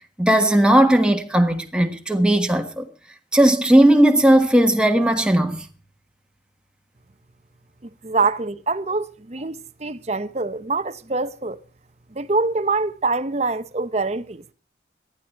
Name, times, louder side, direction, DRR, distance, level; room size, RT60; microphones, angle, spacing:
voice 1, 0.2-2.9 3.3-5.6, right 1 dB, 5° right, 1.4 m, -16 dB
voice 2, 7.8-11.6 12.2-14.5, right 3 dB, 35° right, 0.8 m, -25 dB
19.0 x 13.0 x 4.5 m
head